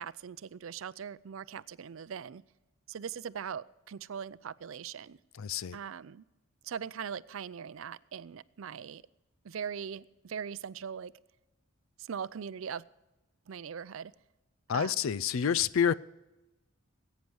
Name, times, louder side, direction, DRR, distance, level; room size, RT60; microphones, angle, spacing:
voice 1, 0.0-2.4 2.9-5.2 5.7-6.2 6.6-9.0 9.4-11.1 12.0-12.8 13.5-14.1 14.7-14.9, right 7 dB, 65° right, 0.4 m, -40 dB
voice 2, 5.4-5.8 14.7-15.9, left 7 dB, 70° left, 0.4 m, -28 dB
20.0 x 9.2 x 4.8 m
head